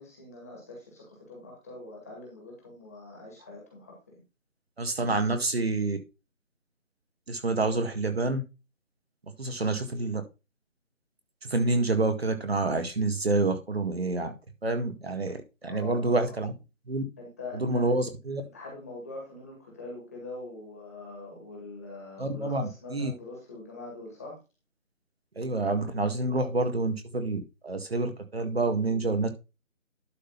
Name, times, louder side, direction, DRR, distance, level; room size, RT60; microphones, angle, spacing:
voice 1, 0.0-4.2 15.7-16.4 17.2-17.9 18.5-24.4, left 2 dB, 10° left, -2 dB, 2.2 m, -43 dB
voice 2, 4.8-6.0 7.3-8.4 9.4-10.2 11.4-14.3 14.6-16.5 16.9-17.0 17.5-18.4 22.2-23.1 25.4-29.3, right 2 dB, 50° right, 6 dB, 1.9 m, -28 dB
11.5 x 4.0 x 5.3 m, 0.27 s
figure-of-eight pair, 175°, 40 cm